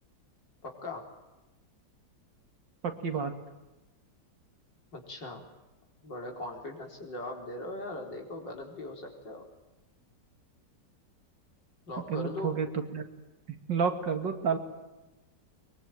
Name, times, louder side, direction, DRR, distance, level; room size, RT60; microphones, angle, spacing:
voice 1, 0.6-1.1 4.9-5.5 6.0-9.5 11.9-12.6, left 2 dB, 80° left, 2 dB, 5.2 m, -40 dB
voice 2, 2.8-3.3 12.1-12.7 12.9-13.0 13.5-14.6, right 6 dB, 85° right, 7 dB, 3.0 m, -30 dB
23.0 x 23.0 x 9.3 m, 1.1 s
omnidirectional pair, 1.9 m